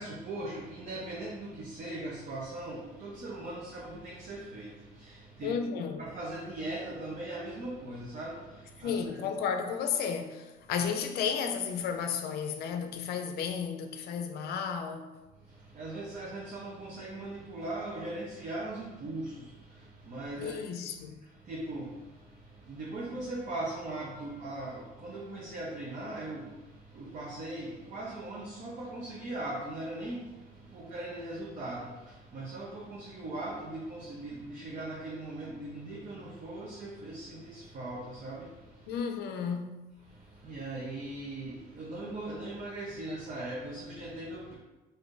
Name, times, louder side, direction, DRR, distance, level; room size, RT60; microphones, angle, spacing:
voice 1, 0.0-5.5 6.0-9.0 15.4-20.6 21.2-39.0 40.0-44.5, right 2 dB, 45° right, 0.7 m, -40 dB
voice 2, 5.4-6.0 8.8-15.2 20.4-21.2 38.9-39.9, left 6 dB, 70° left, 0.4 m, -33 dB
2.6 x 2.5 x 3.7 m
cardioid pair, 110°, 17 cm